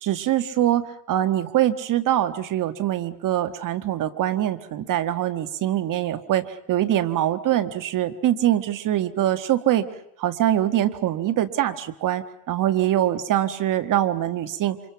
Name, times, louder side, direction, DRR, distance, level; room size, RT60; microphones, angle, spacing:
voice 1, 0.0-9.8 10.2-14.8, right 12 dB, 55° right, 10 dB, 1.6 m, -23 dB
28.5 x 26.0 x 5.9 m, 0.74 s
cardioid pair, 110°, 38 cm